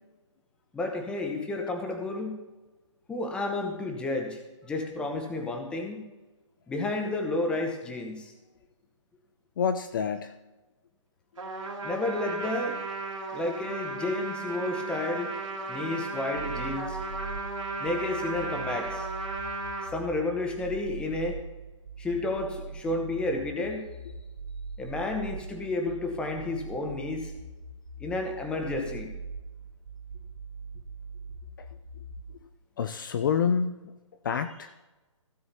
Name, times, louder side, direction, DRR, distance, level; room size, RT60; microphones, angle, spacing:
voice 1, 0.7-2.4 3.1-6.0 6.7-8.3 11.8-12.8 13.3-15.3 15.7-17.0 17.8-19.1 19.9-21.4 22.0-23.9 24.8-27.3 28.0-29.1, left 2 dB, 5° left, 3 dB, 1.0 m, -31 dB
voice 2, 9.6-10.3 31.6-31.7 32.8-33.9 34.2-34.7, left 7 dB, 40° left, 10 dB, 0.5 m, -28 dB
Trumpet, 11.4-19.9, right 3 dB, 90° right, 2.3 m, -35 dB
sound 1, 16.4-32.4, right 4 dB, 60° right, 3.0 m, -41 dB
16.5 x 7.8 x 2.8 m, 1.1 s
hypercardioid pair, 150°, 16 cm